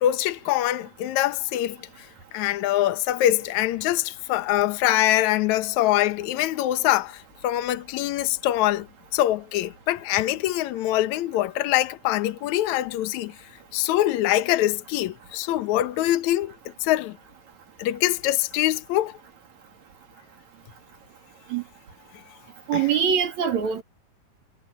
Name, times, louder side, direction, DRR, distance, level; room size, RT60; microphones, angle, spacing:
voice 1, 0.0-1.9 2.3-8.9 9.1-13.4 13.7-16.5 16.8-17.2 17.8-19.2 22.7-22.9, left 14 dB, 65° left, 1.9 m, -24 dB
voice 2, 22.7-23.8, right 7 dB, 50° right, 3.4 m, -23 dB
omnidirectional pair, 4.6 m